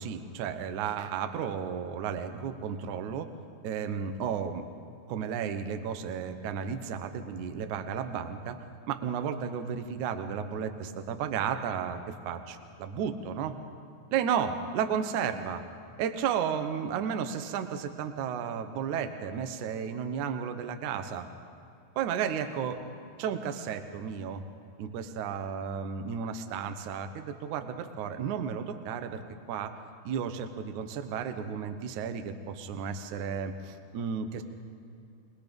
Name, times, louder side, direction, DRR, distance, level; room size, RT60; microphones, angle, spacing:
voice 1, 0.0-3.3 3.6-4.7 5.1-8.6 8.9-13.6 14.1-15.6 16.0-21.3 22.0-22.8 23.2-24.4 24.8-29.2 29.5-29.7 30.0-34.4, right 7 dB, 75° right, 8 dB, 1.8 m, -33 dB
26.5 x 19.5 x 5.3 m, 2.6 s
omnidirectional pair, 5.0 m